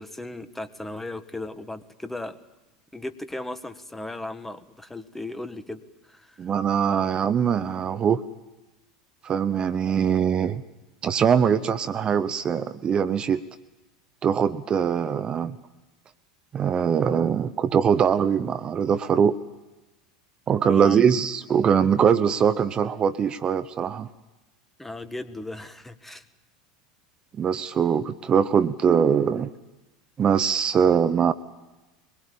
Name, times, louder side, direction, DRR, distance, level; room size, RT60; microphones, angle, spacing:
voice 1, 0.0-2.4 2.9-6.4 20.6-21.0 24.8-26.2, left 2 dB, 5° left, 11 dB, 1.6 m, -36 dB
voice 2, 6.4-8.2 9.2-10.6 11.0-13.4 14.2-15.6 16.5-19.4 20.5-24.1 27.4-29.5 30.2-31.3, right 7 dB, 30° right, 13 dB, 0.9 m, -22 dB
23.0 x 21.5 x 8.7 m, 1.1 s
figure-of-eight pair, 80°, 3 cm